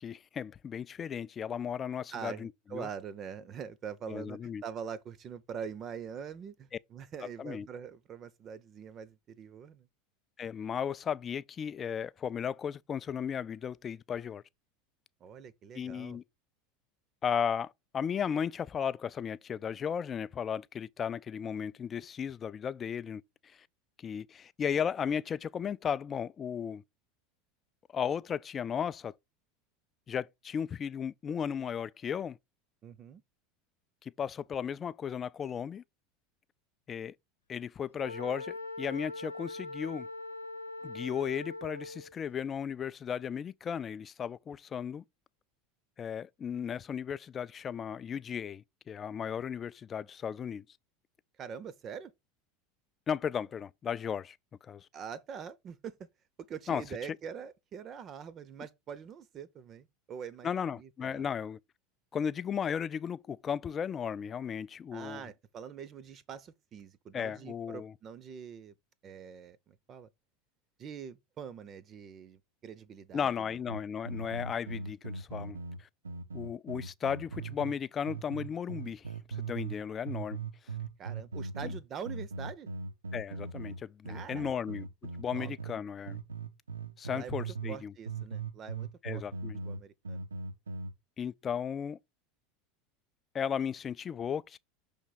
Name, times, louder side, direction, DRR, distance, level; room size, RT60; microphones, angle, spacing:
voice 1, 0.0-2.9 4.1-4.6 7.4-7.7 10.4-14.4 15.7-16.2 17.2-23.6 24.0-26.8 27.9-29.1 30.1-32.4 34.0-35.8 36.9-37.1 37.5-40.1 40.8-45.0 46.0-50.6 53.1-54.4 54.6-54.9 56.7-56.8 60.4-61.6 62.1-65.2 67.1-67.9 73.1-75.9 76.3-80.4 81.6-81.7 83.1-84.9 85.2-86.2 87.0-87.9 89.0-89.6 91.2-92.0 93.3-94.6, left 7 dB, 30° left, 0.3 m, -35 dB
voice 2, 2.1-9.9 15.2-16.2 32.8-33.2 51.4-52.1 54.9-56.1 56.4-60.5 60.7-61.3 64.9-68.7 69.0-70.1 70.8-73.6 81.0-82.7 84.1-84.6 85.3-85.8 87.1-89.2 89.6-90.2, right 7 dB, 35° right, 0.6 m, -44 dB
Wind instrument woodwind instrument, 38.0-42.1, left 2 dB, 85° left, 0.9 m, -41 dB
sound 1, 73.7-77.8 78.1-79.8 80.1-85.8 86.1-87.8 88.1-90.9, right 4 dB, 80° right, 0.6 m, -39 dB
6.1 x 3.5 x 5.7 m
figure-of-eight pair, 75°, 0 cm